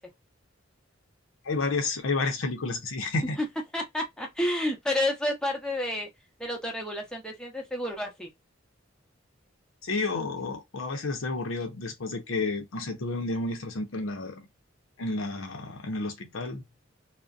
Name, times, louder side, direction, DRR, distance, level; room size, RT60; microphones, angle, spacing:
voice 1, 1.4-3.4 9.8-14.5 15.0-16.6, left 3 dB, 80° left, 0.7 m, -31 dB
voice 2, 3.7-6.1 6.4-8.3, left 1 dB, 5° left, 0.7 m, -30 dB
2.5 x 2.1 x 2.4 m
head